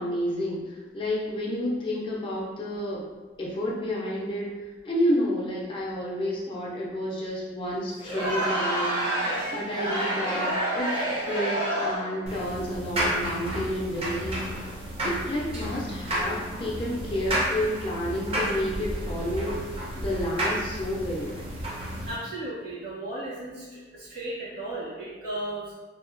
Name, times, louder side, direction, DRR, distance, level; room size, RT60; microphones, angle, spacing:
voice 1, 0.0-3.0 3.4-4.5 4.8-10.9 11.3-14.4 15.0-21.3, equal, 25° left, -4 dB, 0.3 m, -30 dB
Crowd, 8.0-12.2, right 1 dB, 80° right, 1.1 m, -28 dB
sound 1, 12.3-22.1, equal, 30° right, 0.5 m, -31 dB
voice 2, 22.0-25.7, right 1 dB, 55° right, -8 dB, 1.1 m, -35 dB
2.7 x 2.1 x 2.5 m, 1.3 s
head